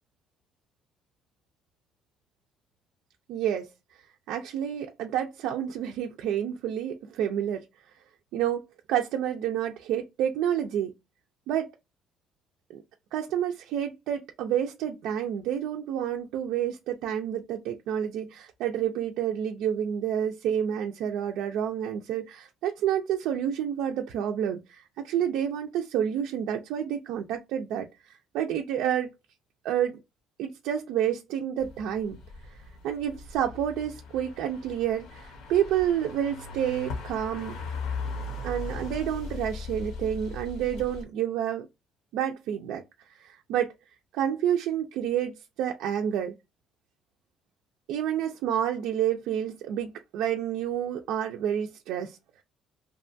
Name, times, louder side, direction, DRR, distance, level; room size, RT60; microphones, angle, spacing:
voice 1, 3.3-3.7 4.3-7.6 8.3-10.9 11.5-11.7 12.7-12.8 13.1-27.9 28.3-29.1 29.6-30.0 30.4-32.2 32.5-32.6 32.8-37.6 38.4-41.7 42.1-42.8 43.1-43.7 44.1-46.3 47.9-52.4, right 10 dB, 85° right, 0.4 m, -29 dB
sound 1, 31.6-41.0, left 3 dB, 75° left, 0.8 m, -38 dB
2.9 x 2.2 x 2.5 m
cardioid pair, 140°, 0 cm